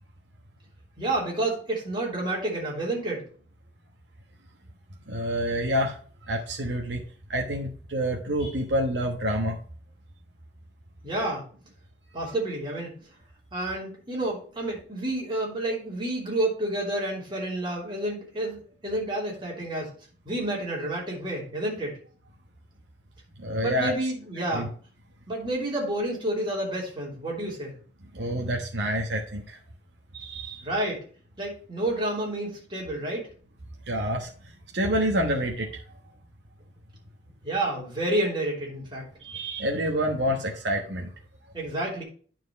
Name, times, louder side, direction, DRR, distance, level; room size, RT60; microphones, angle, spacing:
voice 1, 1.0-3.3 11.0-11.4 12.1-13.0 13.5-19.9 20.2-22.0 23.6-24.7 25.3-27.7 30.6-31.0 31.4-33.3 37.4-39.0 41.5-42.0, right 1 dB, 25° right, -3 dB, 3.2 m, -29 dB
voice 2, 5.1-6.0 6.3-7.0 7.3-9.5 23.4-23.9 24.4-24.7 28.1-29.6 30.1-30.6 33.9-34.3 34.7-35.8 39.2-41.1, equal, 80° right, 1 dB, 1.2 m, -27 dB
9.5 x 4.6 x 4.5 m, 0.42 s
head